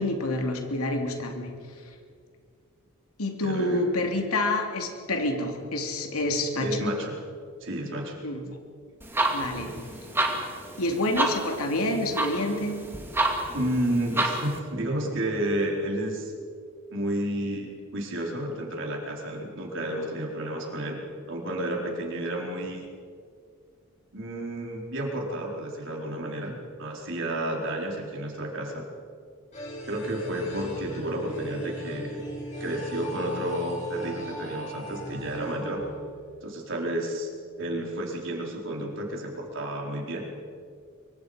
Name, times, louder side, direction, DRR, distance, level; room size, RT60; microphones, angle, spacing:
voice 1, 0.0-1.6 3.2-6.9 8.2-8.6 9.3-9.7 10.8-12.8, left 1 dB, 90° left, 3 dB, 3.1 m, -28 dB
voice 2, 3.4-3.8 6.6-7.2 7.6-8.2 13.5-16.3 16.9-21.0 21.3-22.9 24.1-28.8 29.9-32.2 32.6-35.8 36.4-37.3 37.6-40.2, right 1 dB, 60° right, -1 dB, 4.7 m, -31 dB
sound 1, 9.0-14.6, right 1 dB, 10° right, 2.6 m, -30 dB
sound 2, 29.5-36.5, equal, 35° left, 6.2 m, -38 dB
25.0 x 24.5 x 5.3 m, 2.2 s
head